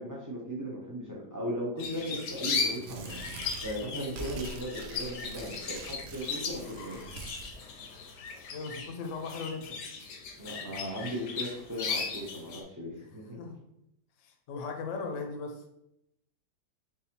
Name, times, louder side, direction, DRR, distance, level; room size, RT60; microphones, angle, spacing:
voice 1, 0.0-3.1 3.6-7.0 10.4-13.4, equal, 30° right, -4 dB, 0.3 m, -37 dB
sound 1, 1.8-12.6, left 5 dB, 80° left, 1.3 m, -37 dB
Tearing, 2.4-7.5, right 4 dB, 75° right, 1.1 m, -44 dB
voice 2, 8.5-9.8 13.4-13.6 14.2-15.6, left 4 dB, 60° left, 4 dB, 0.9 m, -38 dB
4.0 x 3.8 x 2.9 m, 0.81 s
omnidirectional pair, 1.8 m